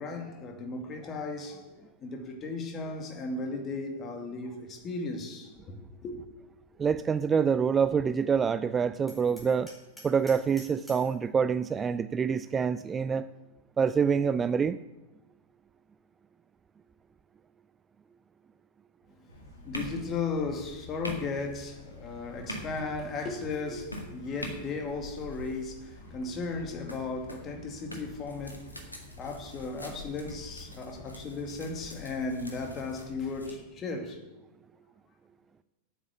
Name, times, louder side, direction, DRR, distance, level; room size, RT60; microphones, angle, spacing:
voice 1, 0.0-6.2 19.6-34.2, left 3 dB, 30° left, 2.3 m, -36 dB
voice 2, 6.8-9.7 10.0-13.3 13.8-14.8, right 6 dB, 20° right, 0.4 m, -26 dB
Hammer, 9.1-11.2, right 1 dB, 5° left, 4.7 m, -50 dB
sound 1, 19.3-33.5, left 1 dB, 85° left, 1.9 m, -44 dB
9.0 x 8.2 x 8.4 m
figure-of-eight pair, 90°, 0 cm